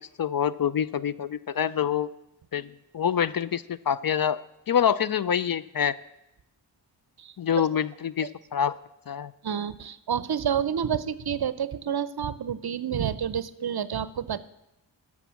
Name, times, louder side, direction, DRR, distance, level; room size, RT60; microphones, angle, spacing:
voice 1, 0.2-2.1 2.5-2.7 2.9-4.4 4.7-5.9 7.4-8.7 9.1-9.3, left 8 dB, 50° left, 17 dB, 0.4 m, -26 dB
voice 2, 9.4-14.4, right 8 dB, 55° right, 16 dB, 0.6 m, -29 dB
12.5 x 6.1 x 7.4 m, 0.89 s
wide cardioid pair, 55°, 48 cm